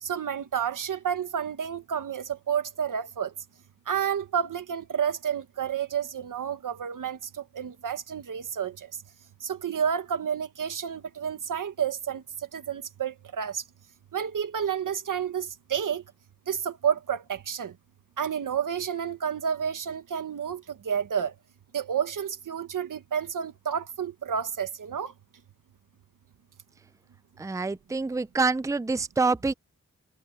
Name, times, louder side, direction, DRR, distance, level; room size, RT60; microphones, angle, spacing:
voice 1, 0.0-3.3 3.9-8.9 9.4-12.2 12.5-13.6 14.1-16.0 16.5-17.7 18.2-21.3 21.7-25.1, right 8 dB, 85° right, 1.6 m, -30 dB
voice 2, 27.4-29.5, right 3 dB, 10° right, 0.5 m, -26 dB
cardioid pair, 65°, 31 cm